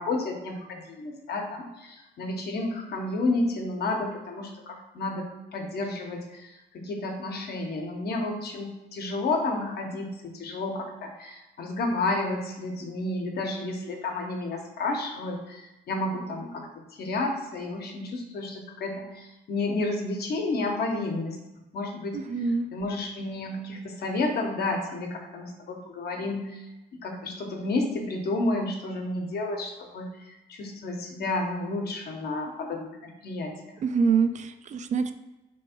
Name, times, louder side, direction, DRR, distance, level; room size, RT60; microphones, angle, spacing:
voice 1, 0.0-16.7 16.9-21.4 21.7-22.2 22.7-26.7 26.9-33.5, left 2 dB, 55° left, 2 dB, 1.0 m, -31 dB
voice 2, 22.1-22.7 33.8-35.1, right 5 dB, 40° right, 9 dB, 0.4 m, -25 dB
3.4 x 3.1 x 4.4 m, 1.0 s
cardioid pair, 95°, 19 cm